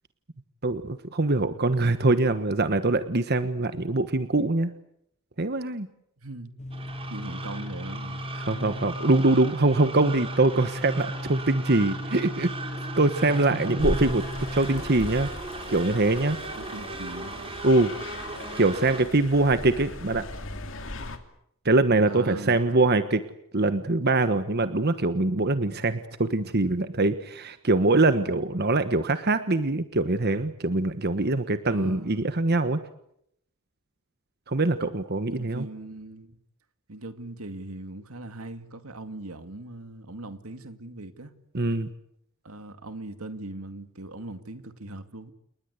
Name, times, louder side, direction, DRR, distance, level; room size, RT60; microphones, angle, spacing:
voice 1, 0.6-4.7 5.4-5.9 8.4-12.5 13.0-14.2 14.5-15.3 15.7-16.4 17.6-17.9 18.6-20.3 21.6-23.2 23.5-32.8 34.5-35.7 41.5-41.9, right 2 dB, 50° right, 1.3 m, -23 dB
voice 2, 6.2-6.6 7.1-8.2 8.6-9.0 13.3-14.1 16.6-17.4 22.1-23.0 31.7-32.4 35.3-36.4 36.9-41.3 42.4-45.3, right 2 dB, 85° right, 2.4 m, -40 dB
sound 1, 6.6-14.8, left 1 dB, 35° left, 1.3 m, -37 dB
sound 2, 6.7-19.0, right 3 dB, 25° right, 4.1 m, -38 dB
sound 3, 13.8-21.2, left 1 dB, 65° left, 2.9 m, -37 dB
29.5 x 20.0 x 8.3 m
head